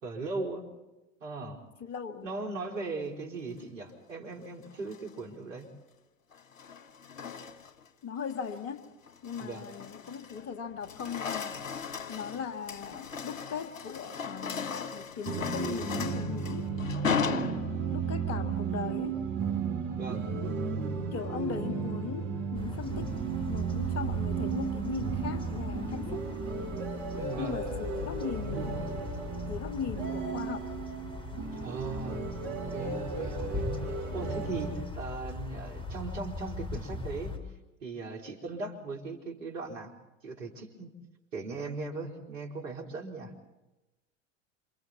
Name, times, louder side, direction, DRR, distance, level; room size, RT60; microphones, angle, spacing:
voice 1, 0.0-0.7 1.2-1.6 2.2-5.7 9.4-9.7 17.2-17.6 19.9-20.3 27.1-27.6 31.6-33.7 34.1-37.4 37.8-39.9 40.2-40.9 41.3-43.3, right 3 dB, 75° right, 1 dB, 4.2 m, -38 dB
voice 2, 1.8-2.3 8.0-8.8 9.2-11.6 12.1-16.7 17.9-19.2 21.1-23.1 23.5-26.2 27.4-28.9 29.5-30.7, left 7 dB, 40° left, 6 dB, 2.3 m, -38 dB
sound 1, 4.7-5.2 6.3-7.9 8.3-8.6 9.1-10.5 10.8-18.1, left 6 dB, 75° left, 1.5 m, -37 dB
sound 2, 15.2-34.7, right 5 dB, 55° right, 5.7 m, -34 dB
sound 3, 22.5-37.4, left 2 dB, 15° left, 3.8 m, -40 dB
28.0 x 27.5 x 4.2 m, 1.0 s
figure-of-eight pair, 80°, 39 cm